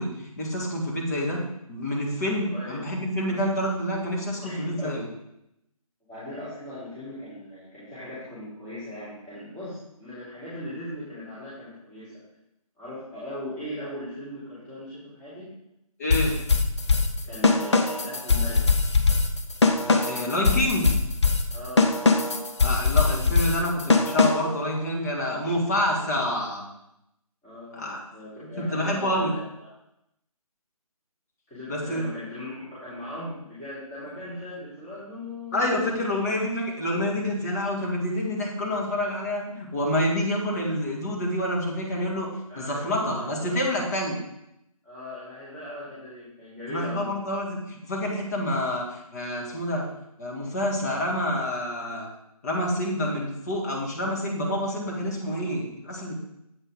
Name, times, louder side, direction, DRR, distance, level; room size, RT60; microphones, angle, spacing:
voice 1, 0.0-1.4 1.7-5.1 16.0-16.4 19.8-20.9 22.6-26.6 27.7-28.0 28.6-29.3 31.7-32.0 35.5-42.3 42.6-44.2 46.7-49.9 50.2-52.1 52.4-56.2, left 1 dB, 25° left, -1 dB, 1.7 m, -27 dB
voice 2, 2.4-3.0 3.3-3.4 4.4-5.1 6.1-12.2 12.8-15.5 17.2-18.7 21.5-21.9 27.4-29.7 31.5-35.7 36.1-36.2 42.5-43.6 44.8-47.2, left 1 dB, 10° left, -14 dB, 2.7 m, -39 dB
sound 1, 16.1-24.6, left 4 dB, 50° left, 0.8 m, -22 dB
8.0 x 5.3 x 5.0 m, 0.82 s
figure-of-eight pair, 155°, 19 cm